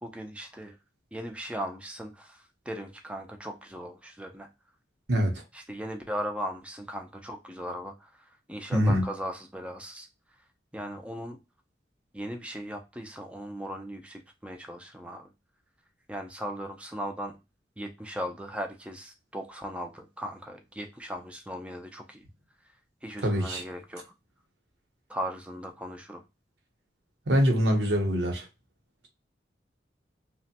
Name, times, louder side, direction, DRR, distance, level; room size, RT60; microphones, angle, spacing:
voice 1, 0.0-0.8 1.1-4.5 5.5-10.4 10.7-11.4 12.1-15.3 16.1-17.4 17.8-22.3 22.6-22.7 23.0-24.0 25.1-26.2, equal, 5° right, 0.4 m, -38 dB
voice 2, 5.1-5.4 8.7-9.0 23.2-23.6 27.3-28.5, equal, 70° right, 0.8 m, -24 dB
3.0 x 2.1 x 2.8 m
head